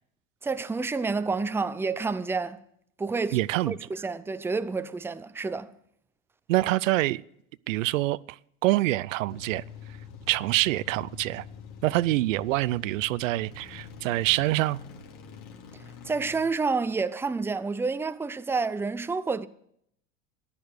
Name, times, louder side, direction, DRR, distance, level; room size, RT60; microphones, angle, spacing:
voice 1, 0.4-2.6 3.0-3.4 3.7-5.7 16.0-19.5, right 4 dB, 5° right, 0.5 m, -29 dB
voice 2, 3.3-3.7 6.5-7.2 7.7-9.6 10.3-11.4 11.8-14.8, right 17 dB, 85° right, 0.5 m, -26 dB
sound 1, 9.3-16.4, left 5 dB, 60° left, 2.8 m, -45 dB
14.0 x 10.5 x 6.5 m
hypercardioid pair, 95°, 38 cm